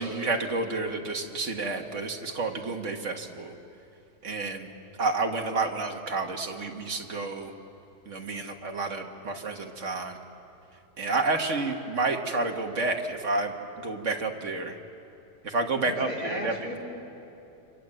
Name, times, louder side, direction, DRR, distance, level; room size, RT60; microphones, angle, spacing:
voice 1, 0.0-3.5 4.2-4.7 5.0-7.5 8.1-10.2 11.0-13.5 13.8-14.8 15.4-16.6, right 3 dB, 45° right, 3 dB, 2.0 m, -30 dB
voice 2, 15.8-16.8, left 1 dB, 65° left, -3 dB, 5.3 m, -35 dB
27.5 x 25.5 x 7.8 m, 2.8 s
omnidirectional pair, 1.8 m